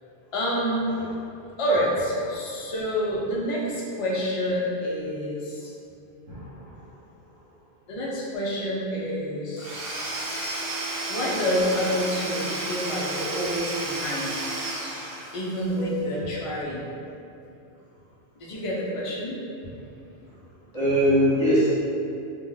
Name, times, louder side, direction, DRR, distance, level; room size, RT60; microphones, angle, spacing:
voice 1, 0.3-0.9 1.6-5.7 7.9-9.8 11.1-14.3 15.3-16.9 18.4-19.4, equal, 55° left, -4 dB, 0.3 m, -28 dB
voice 2, 6.3-6.9 20.7-21.7, equal, 35° right, -13 dB, 0.9 m, -23 dB
Domestic sounds home sounds / Tools, 9.6-15.7, right 2 dB, 65° right, 0.8 m, -32 dB
2.2 x 2.0 x 3.8 m, 2.7 s
omnidirectional pair, 1.1 m